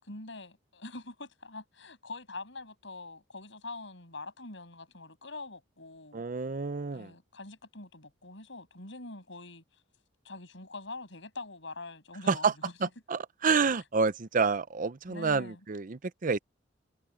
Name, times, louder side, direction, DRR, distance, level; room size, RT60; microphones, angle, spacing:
voice 1, 0.0-6.2 6.9-9.8 10.2-12.7 15.1-15.7, left 3 dB, 70° left, 7.9 m, -44 dB
voice 2, 6.1-7.1 12.3-12.5 12.8-16.4, right 5 dB, 45° right, 0.6 m, -28 dB
head